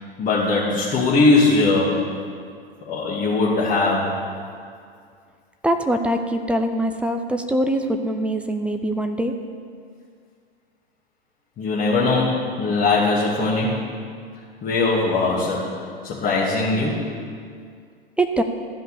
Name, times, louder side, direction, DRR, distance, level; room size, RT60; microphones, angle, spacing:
voice 1, 0.2-2.1 2.9-4.2 11.6-13.8 14.6-15.7 16.0-17.1, left 3 dB, 25° left, -9 dB, 2.3 m, -20 dB
voice 2, 5.6-9.3 18.2-18.4, right 1 dB, 5° right, 6 dB, 0.4 m, -23 dB
12.5 x 5.3 x 8.3 m, 2.2 s
figure-of-eight pair, 100°, 30 cm